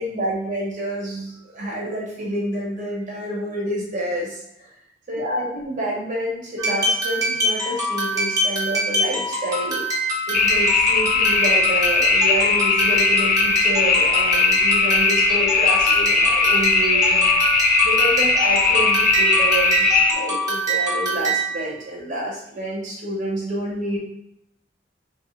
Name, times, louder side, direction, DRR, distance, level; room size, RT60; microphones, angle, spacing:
voice 1, 0.0-4.4 5.1-9.8 10.3-17.3 17.8-24.0, right 1 dB, 45° right, -4 dB, 1.0 m, -28 dB
sound 1, 6.6-21.6, right 1 dB, 20° right, 0.8 m, -25 dB
sound 2, 10.3-20.1, left 4 dB, 50° left, 0.4 m, -19 dB
2.9 x 2.3 x 3.2 m, 0.76 s
head